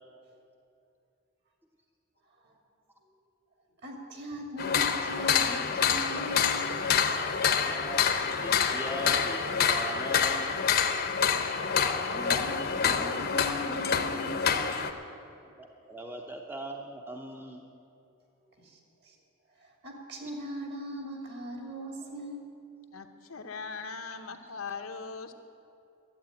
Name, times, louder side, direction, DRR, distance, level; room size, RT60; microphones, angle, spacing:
voice 1, 3.8-6.7 12.0-15.0 18.5-19.2 19.6-22.5, right 1 dB, 50° right, 2 dB, 2.3 m, -40 dB
sound 1, 4.6-14.9, left 7 dB, 50° left, 0.8 m, -27 dB
voice 2, 7.6-10.6 15.3-17.7 20.2-20.3, right 1 dB, 10° right, 2 dB, 0.7 m, -40 dB
voice 3, 22.9-25.3, left 5 dB, 80° left, 6 dB, 0.9 m, -40 dB
12.0 x 8.0 x 9.8 m, 2.6 s
head